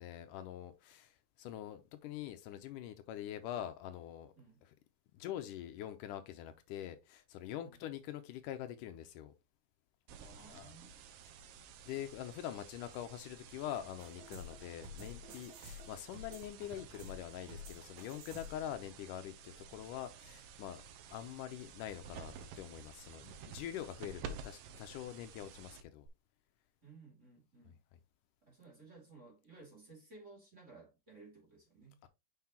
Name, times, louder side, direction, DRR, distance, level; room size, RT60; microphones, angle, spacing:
voice 1, 0.0-4.3 4.6-4.7 5.1-9.3 10.4-10.8 11.9-20.8 21.1-26.1 27.7-27.8 32.0-32.1, left 11 dB, 80° left, 2.2 m, -45 dB
voice 2, 10.1-11.0 26.8-27.8 28.4-32.0, right 3 dB, 25° right, 2.6 m, -57 dB
sound 1, 10.1-26.1, right 6 dB, 90° right, 2.6 m, -52 dB
sound 2, 14.0-18.7, left 2 dB, 70° right, 2.7 m, -51 dB
6.6 x 5.7 x 2.9 m
omnidirectional pair, 3.8 m